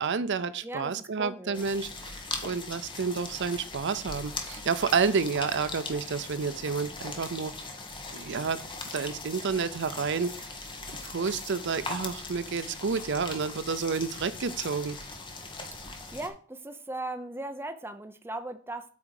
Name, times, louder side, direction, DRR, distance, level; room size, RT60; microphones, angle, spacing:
voice 1, 0.0-7.5 8.1-8.7 8.9-10.3 11.0-15.0, right 5 dB, 55° right, 14 dB, 0.6 m, -30 dB
voice 2, 0.6-1.9 16.1-18.8, right 2 dB, 10° right, 7 dB, 0.8 m, -38 dB
sound 1, 1.5-16.3, left 3 dB, 25° left, 1.7 m, -40 dB
8.6 x 4.9 x 6.4 m, 0.43 s
head